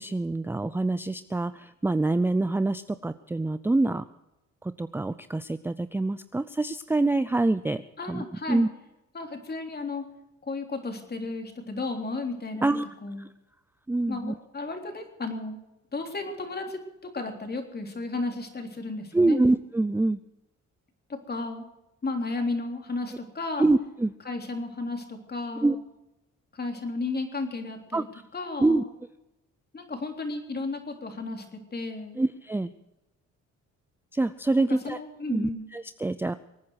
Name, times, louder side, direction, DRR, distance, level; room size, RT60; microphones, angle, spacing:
voice 1, 0.0-4.0 4.8-8.7 12.6-12.9 13.9-14.3 19.1-20.2 23.6-24.1 25.6-25.8 27.9-28.0 28.6-28.8 32.2-32.7 34.1-35.0 35.3-36.4, right 2 dB, 5° right, 13 dB, 0.5 m, -25 dB
voice 2, 8.0-8.7 9.1-10.1 10.5-13.2 14.1-15.6 15.9-19.4 21.1-21.6 22.0-23.7 24.3-25.8 26.5-28.1 28.3-28.9 29.7-32.2 34.8-35.7, left 3 dB, 30° left, 4 dB, 3.5 m, -33 dB
24.0 x 9.5 x 6.4 m, 0.94 s
cardioid pair, 90°, 30 cm